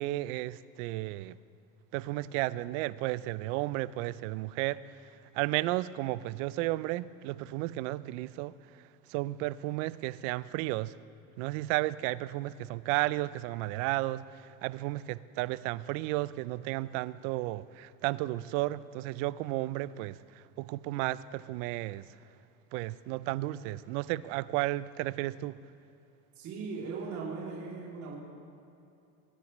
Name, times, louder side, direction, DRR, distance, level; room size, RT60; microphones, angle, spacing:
voice 1, 0.0-1.4 1.9-4.8 5.3-8.5 9.1-11.0 11.4-22.1 22.7-25.6, right 18 dB, 80° right, 0.5 m, -33 dB
voice 2, 26.4-28.2, right 4 dB, 50° right, 2.9 m, -38 dB
21.0 x 10.5 x 3.1 m
supercardioid pair, 115°, 38 cm